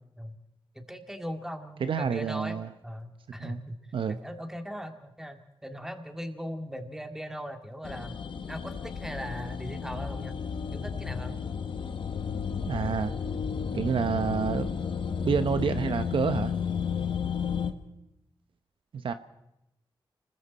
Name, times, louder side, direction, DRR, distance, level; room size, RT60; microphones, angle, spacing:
voice 1, 0.7-3.8 4.1-8.2 8.5-10.3 10.7-11.4 17.6-17.9, equal, 5° right, 5 dB, 2.3 m, -39 dB
voice 2, 1.8-2.7 3.4-3.6 3.9-4.2 12.6-13.1 13.7-14.7 15.2-16.5 18.9-19.1, right 6 dB, 70° right, 10 dB, 1.0 m, -28 dB
sound 1, 7.8-17.7, left 6 dB, 65° left, 1.3 m, -32 dB
30.0 x 21.0 x 4.2 m, 0.86 s
cardioid pair, 90°, 9 cm